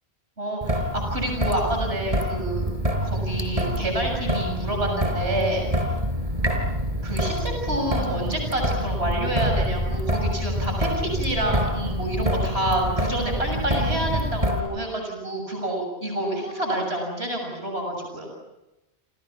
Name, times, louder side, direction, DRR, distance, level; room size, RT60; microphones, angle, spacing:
voice 1, 0.4-2.6 3.0-5.6 7.0-18.3, right 1 dB, 75° right, 2 dB, 7.3 m, -28 dB
Traffic noise roadway noise / Drip / Trickle dribble, 0.6-14.6, equal, 35° right, 4.5 m, -26 dB
29.5 x 29.0 x 6.0 m, 0.96 s
omnidirectional pair, 1.1 m